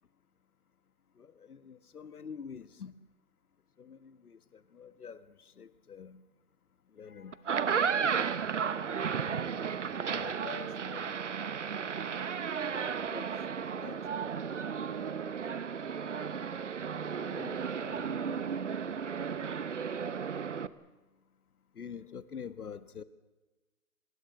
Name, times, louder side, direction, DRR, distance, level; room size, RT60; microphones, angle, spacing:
voice 1, 1.2-2.9 3.8-4.4 4.7-6.2 7.0-7.4 9.0-9.3 9.7-11.2 12.6-13.3 13.7-14.3 14.8-14.9 17.2-18.4 21.8-23.0, left 6 dB, 70° left, 14 dB, 1.5 m, -47 dB
sound 1, 7.3-20.7, right 6 dB, 50° right, 1.0 m, -34 dB
24.5 x 21.5 x 7.9 m, 1.2 s
hypercardioid pair, 175°, 46 cm